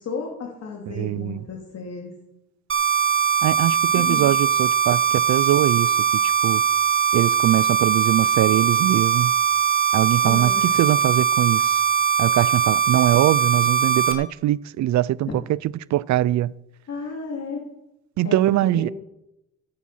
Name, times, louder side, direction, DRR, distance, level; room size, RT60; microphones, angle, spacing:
voice 1, 0.0-2.1 3.9-4.3 10.2-10.7 12.9-13.0 15.3-15.4 16.9-17.6 18.2-18.9, left 5 dB, 55° left, 2.8 m, -33 dB
voice 2, 0.9-1.4 3.4-5.9 6.4-6.6 7.1-9.3 9.9-11.8 12.2-15.6 15.9-16.5 18.2-18.9, right 14 dB, 70° right, 0.5 m, -22 dB
sound 1, 2.7-14.1, right 7 dB, 45° right, 2.2 m, -21 dB
16.5 x 8.6 x 5.7 m
cardioid pair, 90°, 30 cm